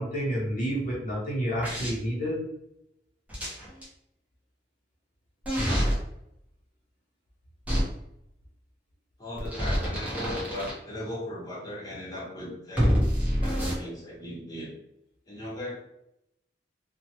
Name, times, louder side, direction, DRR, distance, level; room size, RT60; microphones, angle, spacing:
voice 1, 0.0-2.4, equal, 50° left, -5 dB, 0.7 m, -29 dB
sound 1, 1.6-1.9 3.3-3.9 5.4-5.9 7.7-7.8 9.4-10.7 12.8-13.7, equal, 10° right, 0.8 m, -26 dB
voice 2, 9.2-13.0 13.4-14.7 15.3-15.8, left 1 dB, 20° left, -5 dB, 0.9 m, -37 dB
2.8 x 2.2 x 2.8 m, 0.81 s
head